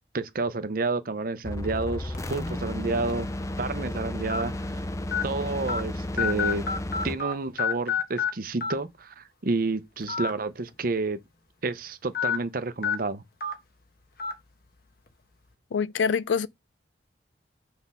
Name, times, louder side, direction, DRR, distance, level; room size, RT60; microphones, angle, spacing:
voice 1, 0.1-3.3 3.6-4.8 5.2-6.6 7.0-11.2 11.6-13.2, right 3 dB, 50° right, 0.7 m, -30 dB
sound 1, 1.4-7.3, left 1 dB, 15° left, 0.5 m, -33 dB
sound 2, 2.1-2.4 3.1-3.2 4.3-4.4 5.1-5.2 5.7-5.8 6.2-7.3 7.6-8.3 8.6-8.7 10.0-10.3 10.7-10.8 12.1-12.4 12.8-12.9 13.4-13.5 14.2-14.3, left 6 dB, 55° left, 1.3 m, -27 dB
voice 2, 15.7-16.5, left 6 dB, 85° left, 0.4 m, -25 dB
6.0 x 3.5 x 5.5 m
head